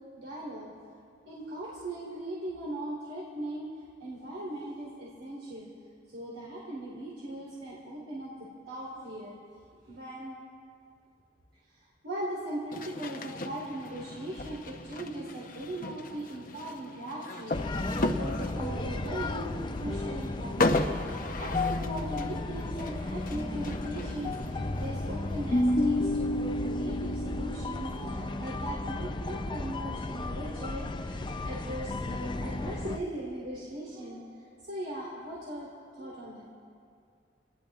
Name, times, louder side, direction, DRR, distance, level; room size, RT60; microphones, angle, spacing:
voice 1, 0.2-0.7 1.3-3.7 4.0-5.7 6.1-8.3 8.7-9.4 9.8-10.4 11.7-19.4 19.8-34.2 34.7-35.7 35.9-36.4, right 1 dB, 85° right, -7 dB, 3.6 m, -39 dB
sound 1, 12.7-25.6, left 2 dB, 50° left, 0.9 m, -36 dB
sound 2, 17.5-33.0, left 2 dB, 25° left, 0.5 m, -32 dB
27.5 x 19.5 x 2.4 m, 2.3 s
head